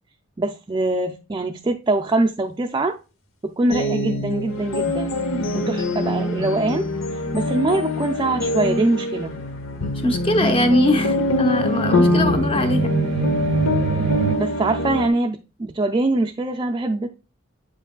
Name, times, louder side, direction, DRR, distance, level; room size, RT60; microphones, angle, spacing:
voice 1, 0.4-3.0 3.4-5.2 5.5-6.9 7.1-9.3 14.4-17.1, right 2 dB, 20° right, 0.4 m, -23 dB
sound 1, 3.7-15.1, left 1 dB, 80° left, 0.9 m, -24 dB
voice 2, 5.3-5.7 10.0-12.9, left 1 dB, 25° left, 0.9 m, -21 dB
sound 2, 10.3-14.4, right 7 dB, 90° right, 0.3 m, -27 dB
7.8 x 5.7 x 2.3 m
head